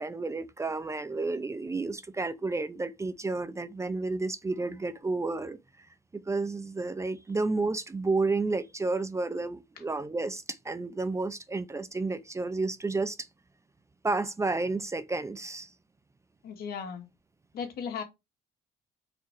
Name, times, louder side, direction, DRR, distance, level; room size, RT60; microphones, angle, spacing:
voice 1, 0.0-13.3 14.0-15.7, right 3 dB, 15° right, 0.7 m, -31 dB
voice 2, 16.4-17.1 17.5-18.0, left 6 dB, 65° left, 2.2 m, -36 dB
4.8 x 4.4 x 6.0 m
cardioid pair, 110°, 17 cm